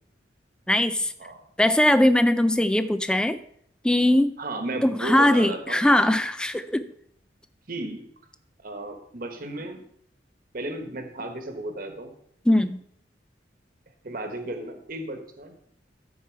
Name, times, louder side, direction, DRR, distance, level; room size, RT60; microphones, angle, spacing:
voice 1, 0.7-1.1 1.6-3.4 3.8-4.4 4.8-6.9 12.5-12.8, left 1 dB, 5° left, 12 dB, 0.3 m, -20 dB
voice 2, 4.4-5.8 7.7-8.1 8.6-9.8 10.5-12.1 14.0-15.5, right 2 dB, 50° right, 5 dB, 1.2 m, -34 dB
13.5 x 4.7 x 4.5 m, 0.68 s
head